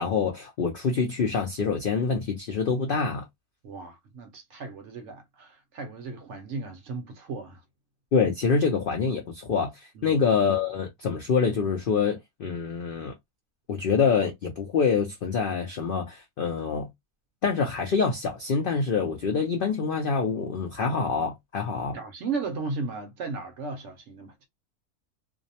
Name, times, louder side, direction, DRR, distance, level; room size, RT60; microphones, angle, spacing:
voice 1, 0.0-3.2 8.1-13.1 13.7-16.9 17.4-22.0, left 5 dB, 70° left, 0.5 m, -26 dB
voice 2, 3.6-7.6 9.9-10.2 21.9-24.5, right 4 dB, 65° right, 0.8 m, -35 dB
2.6 x 2.0 x 2.7 m
omnidirectional pair, 1.5 m